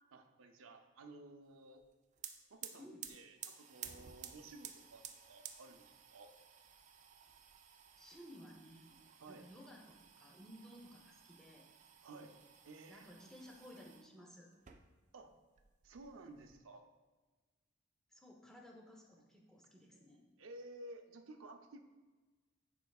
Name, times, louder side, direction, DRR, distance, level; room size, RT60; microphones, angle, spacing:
voice 1, 0.1-1.8 2.5-6.3 9.0-9.5 12.0-12.4 12.6-13.1 15.1-15.3 15.8-16.8 20.4-21.8, right 2 dB, 90° right, 5 dB, 0.6 m, -54 dB
sound 1, 1.8-1.9 2.1-14.1 14.5-15.3 15.6-16.6, right 9 dB, 35° right, 0.3 m, -54 dB
voice 2, 2.8-3.1 8.0-9.0 9.3-11.7 12.9-14.5 18.1-20.2, equal, 5° left, 0 dB, 0.6 m, -57 dB
10.5 x 4.5 x 2.3 m, 1.3 s
head